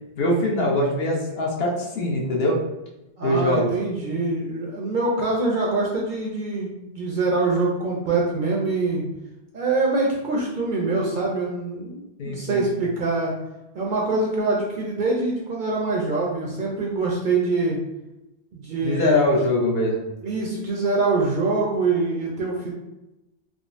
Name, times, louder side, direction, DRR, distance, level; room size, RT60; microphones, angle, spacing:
voice 1, 0.2-2.6 3.2-3.7 12.2-12.7 18.8-20.1, left 1 dB, 65° left, -2 dB, 0.9 m, -22 dB
voice 2, 3.2-9.1 9.5-13.3 13.7-17.8 18.5-19.3 20.2-22.7, right 3 dB, 60° right, -2 dB, 0.6 m, -24 dB
3.6 x 2.0 x 2.4 m, 0.97 s
omnidirectional pair, 1.1 m